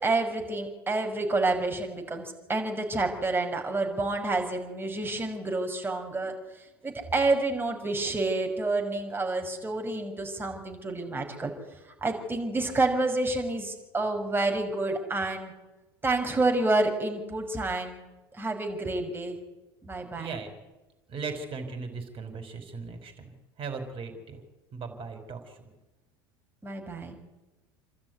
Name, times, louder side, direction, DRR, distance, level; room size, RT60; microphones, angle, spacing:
voice 1, 0.0-6.4 6.8-11.5 12.0-15.5 16.0-18.0 18.4-19.4 19.8-20.4 26.6-27.2, right 2 dB, 15° right, 3 dB, 5.8 m, -29 dB
voice 2, 20.2-20.5 21.1-23.3 23.6-24.4 24.7-25.7, right 4 dB, 45° right, 8 dB, 5.2 m, -38 dB
28.5 x 13.0 x 9.6 m, 1.1 s
hypercardioid pair, 80°, 13 cm